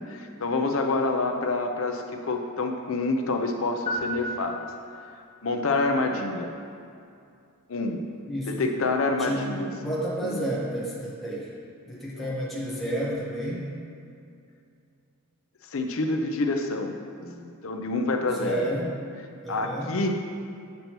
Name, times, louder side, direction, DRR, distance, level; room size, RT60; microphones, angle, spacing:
voice 1, 0.0-4.7 5.4-6.5 7.7-8.0 8.5-9.7 10.2-10.4 12.2-12.3 15.7-16.9 17.2-18.6 19.5-20.2, left 3 dB, 70° left, 4 dB, 0.6 m, -27 dB
sound 1, 3.9-5.3, equal, 25° left, 1.3 m, -34 dB
voice 2, 8.3-8.6 9.2-11.5 11.9-13.7 18.3-18.9 19.4-19.9, right 1 dB, ahead, -7 dB, 1.3 m, -31 dB
8.4 x 6.6 x 3.0 m, 2.5 s
head